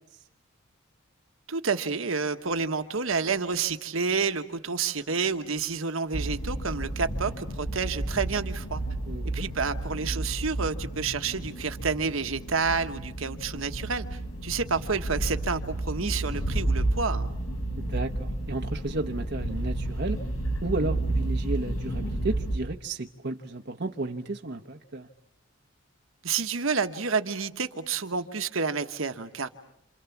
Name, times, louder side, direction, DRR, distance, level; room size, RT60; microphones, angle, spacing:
voice 1, 1.5-8.8 9.2-17.3 26.2-29.5, right 5 dB, 75° right, 8 dB, 1.2 m, -29 dB
sound 1, 6.1-22.6, right 1 dB, 75° left, 5.1 m, -31 dB
voice 2, 9.1-9.5 17.8-20.2 20.6-25.1, right 2 dB, 55° right, 4 dB, 1.1 m, -33 dB
28.0 x 28.0 x 7.2 m, 0.83 s
head